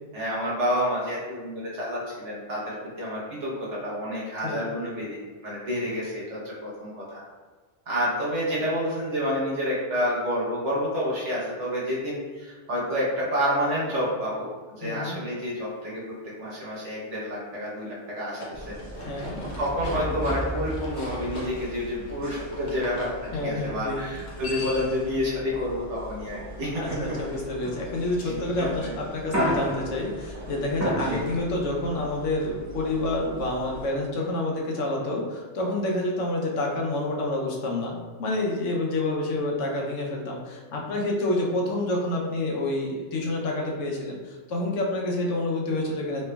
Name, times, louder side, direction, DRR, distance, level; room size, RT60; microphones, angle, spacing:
voice 1, 0.1-5.2 5.4-7.2 7.9-18.7 19.6-27.2 28.2-29.0 31.0-31.2, equal, 75° right, -6 dB, 1.3 m, -29 dB
voice 2, 14.8-15.2 19.0-19.4 23.3-24.0 26.8-46.2, left 2 dB, 90° left, -2 dB, 1.0 m, -28 dB
sound 1, 18.2-23.1 24.1-25.0, left 1 dB, 45° left, 0.7 m, -40 dB
sound 2, 18.5-33.9, equal, 30° right, 0.3 m, -35 dB
3.2 x 3.0 x 2.2 m, 1.5 s
omnidirectional pair, 1.2 m